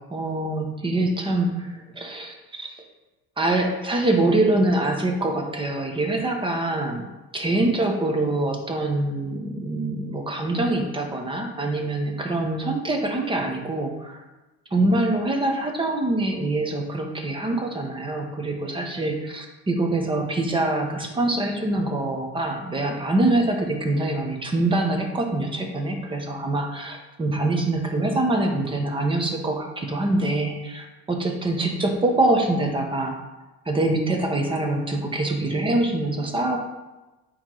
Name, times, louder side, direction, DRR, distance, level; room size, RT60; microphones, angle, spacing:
voice 1, 0.0-2.8 3.4-7.0 7.3-14.2 14.7-33.2 33.7-36.6, right 2 dB, 15° right, 3 dB, 0.8 m, -24 dB
8.7 x 3.1 x 3.8 m, 1.1 s
cardioid pair, 145°, 32 cm